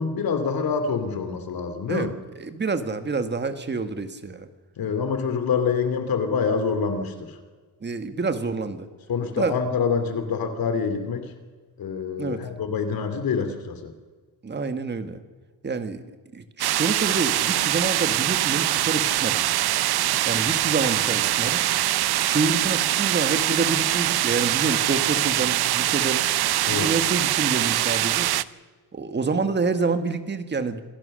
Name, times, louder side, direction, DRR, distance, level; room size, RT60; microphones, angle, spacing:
voice 1, 0.0-2.1 4.8-7.4 9.1-11.3 11.8-13.9 26.6-26.9, left 5 dB, 60° left, 9 dB, 2.7 m, -26 dB
voice 2, 2.4-4.5 7.8-8.9 9.4-9.6 12.2-12.4 14.4-15.2 15.6-16.0 16.3-19.4 20.2-21.6 22.2-26.2 26.7-28.3 28.9-30.8, right 4 dB, 25° right, 9 dB, 1.7 m, -27 dB
sound 1, 16.6-28.4, right 14 dB, 70° right, 0.7 m, -23 dB
26.5 x 17.0 x 6.6 m, 1.4 s
cardioid pair, 145°, 40 cm